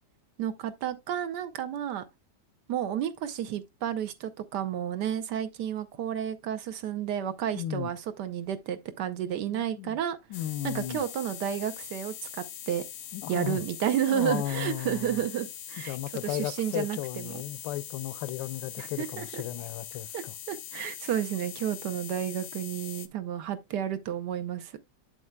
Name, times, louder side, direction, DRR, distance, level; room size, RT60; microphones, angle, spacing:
voice 1, 0.4-2.0 2.7-10.2 10.6-12.8 13.3-16.0 16.2-17.4 18.8-19.4 20.1-24.8, right 10 dB, 75° right, 1.3 m, -31 dB
voice 2, 7.6-7.9 9.5-10.0 10.3-11.0 13.1-13.6 14.1-15.2 15.9-20.3, left 13 dB, 85° left, 1.3 m, -35 dB
sound 1, 10.3-23.1, left 10 dB, 60° left, 0.8 m, -42 dB
7.9 x 7.6 x 2.2 m
omnidirectional pair, 1.9 m